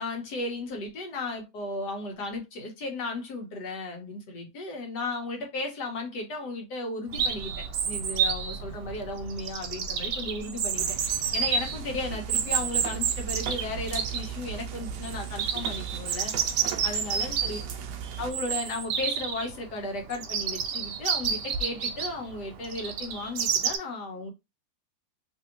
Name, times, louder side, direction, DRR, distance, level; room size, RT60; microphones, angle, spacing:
voice 1, 0.0-16.3 16.8-17.6 18.2-24.3, left 2 dB, 85° left, 1.6 m, -35 dB
Chirp tweet, 7.1-23.8, right 7 dB, 85° right, 1.2 m, -30 dB
sound 1, 10.7-18.3, right 8 dB, 70° right, 0.9 m, -38 dB
3.3 x 2.6 x 2.8 m
omnidirectional pair, 1.8 m